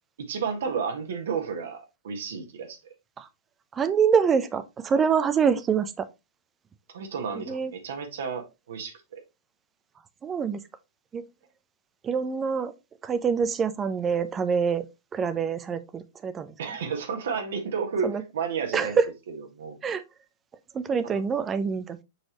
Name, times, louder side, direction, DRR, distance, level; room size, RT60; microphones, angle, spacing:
voice 1, 0.2-2.9 6.9-9.2 16.6-18.1 18.3-19.0 19.5-19.8 21.1-21.2, right 6 dB, 65° right, 1.6 m, -32 dB
voice 2, 3.7-6.1 7.4-7.7 10.2-10.6 11.1-11.2 12.0-12.7 13.0-14.9 15.1-16.6 18.0-18.2 18.7-19.1 19.8-20.0 20.7-22.0, right 6 dB, 20° right, 0.7 m, -25 dB
6.4 x 4.7 x 3.1 m
figure-of-eight pair, 105°, 0 cm